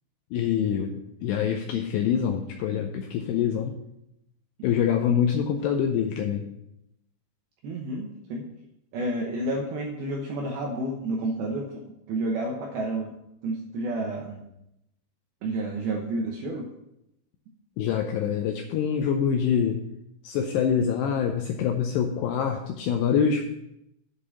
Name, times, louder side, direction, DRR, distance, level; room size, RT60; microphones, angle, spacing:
voice 1, 0.3-3.7 4.6-6.4 17.8-19.8 20.2-23.4, left 8 dB, 85° left, 4 dB, 2.4 m, -25 dB
voice 2, 7.6-8.5 8.9-13.1 13.4-14.4 15.4-16.7, right 2 dB, 75° right, 0 dB, 2.3 m, -30 dB
8.2 x 5.3 x 7.1 m, 0.83 s
omnidirectional pair, 5.5 m